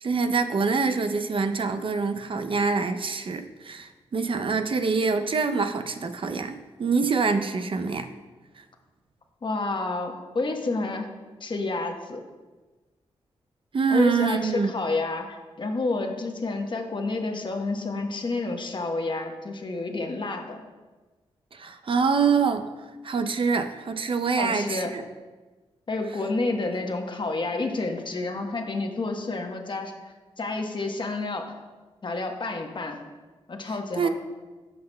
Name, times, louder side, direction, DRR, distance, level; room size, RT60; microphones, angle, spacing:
voice 1, 0.0-8.1 8.6-8.7 13.7-14.7 21.5-22.7 23.0-25.0 26.6-26.7 33.7-34.1, right 5 dB, 50° right, 8 dB, 0.6 m, -25 dB
voice 2, 9.4-11.1 11.4-12.2 13.9-20.6 24.4-24.9 25.9-31.5 32.0-33.0 33.5-34.1, left 3 dB, 45° left, 3 dB, 1.1 m, -29 dB
13.0 x 5.7 x 2.2 m, 1.3 s
cardioid pair, 55°, 11 cm